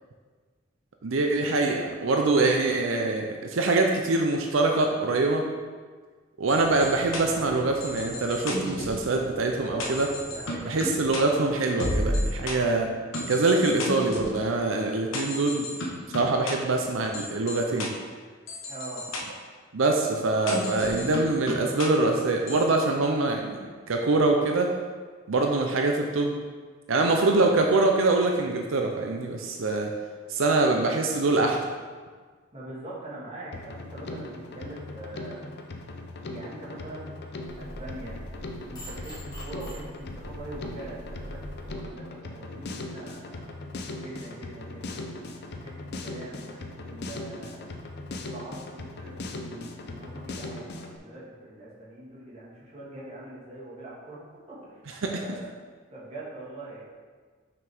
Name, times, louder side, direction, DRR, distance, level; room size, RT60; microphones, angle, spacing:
voice 1, 1.0-5.5 6.4-10.1 10.6-12.9 13.3-15.7 16.1-17.9 19.7-24.7 25.3-26.4 26.9-29.9 30.3-31.7 55.0-55.1, right 3 dB, 90° right, 2 dB, 0.6 m, -24 dB
sound 1, 6.5-12.5 13.1-14.4 15.1-16.5 17.1-17.9 18.5-19.2 20.5-21.9 22.5-22.6, left 1 dB, 80° left, 1.1 m, -33 dB
voice 2, 9.6-10.0 10.3-10.7 13.2-13.4 18.7-19.1 32.5-35.5 36.3-37.1 37.6-38.2 38.7-43.5 44.0-45.0 45.6-45.8 46.0-47.6 48.3-54.2 54.5-55.5 55.9-56.8, right 2 dB, 30° right, -6 dB, 1.7 m, -42 dB
Drum kit, 33.5-51.0, left 2 dB, 55° left, 0.6 m, -39 dB
sound 2, 37.5-41.7, equal, 20° left, 1.6 m, -42 dB
6.2 x 5.9 x 3.5 m, 1.5 s
head